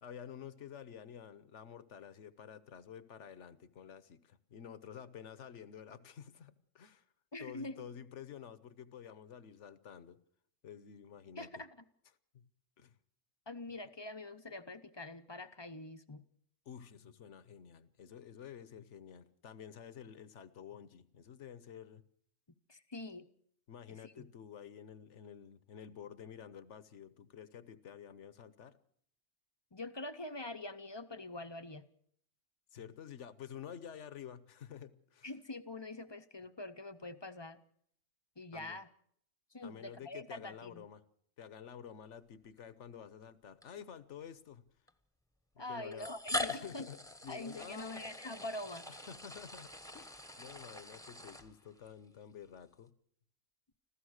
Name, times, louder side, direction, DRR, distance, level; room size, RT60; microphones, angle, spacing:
voice 1, 0.0-7.0 7.4-10.2 10.6-11.6 12.3-12.4 12.8-12.9 16.7-22.0 23.7-28.8 32.7-35.3 38.5-38.8 39.6-41.0 41.4-44.6 45.5-46.1 46.5-47.0 47.2-48.0 48.9-52.9, left 8 dB, 65° left, 15 dB, 1.3 m, -50 dB
voice 2, 7.3-7.8 11.4-11.8 13.5-16.3 22.7-23.3 23.9-24.3 29.7-31.8 35.2-37.6 38.4-38.9 39.5-40.8 45.6-46.9 47.3-48.9, left 2 dB, 25° left, 10 dB, 0.8 m, -45 dB
sound 1, 42.4-42.6 43.6-43.7 44.9-45.0 45.9-51.9, left 2 dB, 5° left, 1.0 m, -43 dB
26.0 x 15.5 x 6.5 m, 0.65 s
omnidirectional pair, 1.3 m